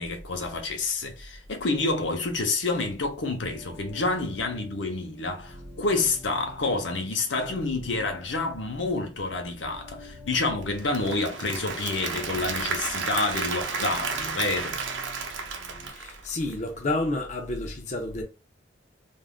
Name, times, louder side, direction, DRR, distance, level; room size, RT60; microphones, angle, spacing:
voice 1, 0.0-14.8, left 3 dB, 75° left, 0.8 m, -28 dB
sound 1, 3.3-15.9, left 2 dB, 10° left, 1.4 m, -48 dB
Applause / Crowd, 10.6-16.7, right 5 dB, 80° right, 0.6 m, -32 dB
voice 2, 15.9-18.2, left 2 dB, 40° left, 0.5 m, -30 dB
3.5 x 2.5 x 2.3 m
head